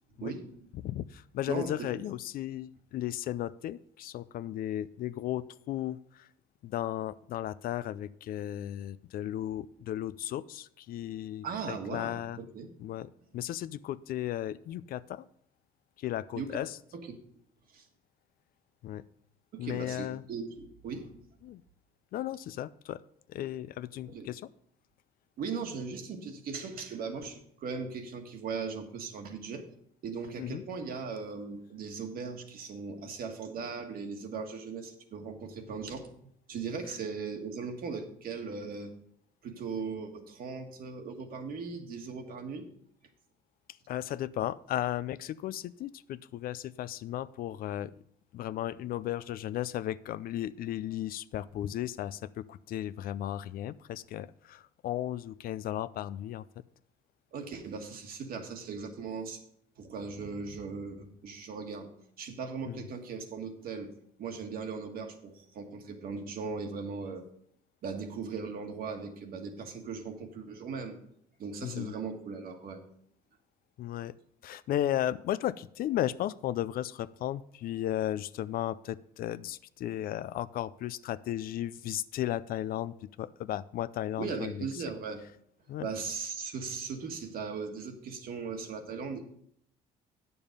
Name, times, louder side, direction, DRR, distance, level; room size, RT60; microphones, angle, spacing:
voice 1, 0.2-0.5 1.5-1.9 11.4-12.7 16.3-16.6 16.9-17.1 17.7-17.8 19.5-21.1 24.1-24.3 25.4-29.6 30.0-38.9 39.4-42.6 57.3-59.4 59.8-61.9 62.2-63.9 64.2-67.3 67.8-70.9 71.4-72.8 84.2-85.2 85.8-89.2, right 5 dB, 60° right, 5 dB, 1.6 m, -38 dB
voice 2, 0.8-6.3 6.6-12.4 12.8-15.3 16.0-16.8 18.8-19.0 19.6-20.2 21.4-21.6 22.1-23.0 23.3-24.4 30.4-30.6 43.9-47.9 48.3-56.4 62.6-62.8 71.6-71.9 73.8-74.1 74.4-84.7 85.7-85.9, left 12 dB, 60° left, 17 dB, 0.4 m, -35 dB
8.9 x 6.9 x 5.3 m, 0.67 s
cardioid pair, 110°, 17 cm